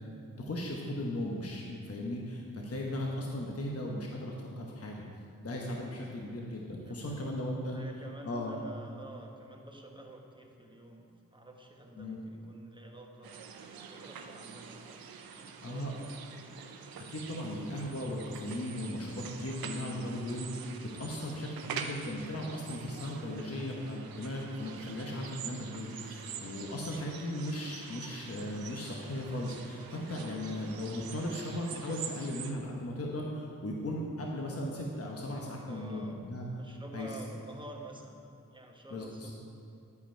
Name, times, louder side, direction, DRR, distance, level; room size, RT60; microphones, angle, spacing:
voice 1, 0.4-5.0 5.4-7.8 8.2-8.6 12.0-12.2 15.6-15.9 17.1-20.7 21.0-36.5 36.9-37.1 38.9-39.3, left 1 dB, 45° left, -1 dB, 1.1 m, -37 dB
voice 2, 6.8-7.3 7.7-13.3 13.9-16.0 35.7-36.2 36.5-38.2 38.5-39.3, right 1 dB, 15° right, 0 dB, 1.3 m, -49 dB
sound 1, 13.2-32.5, right 6 dB, 90° right, 0.6 m, -45 dB
10.5 x 5.1 x 4.5 m, 2.6 s
cardioid pair, 40°, 35 cm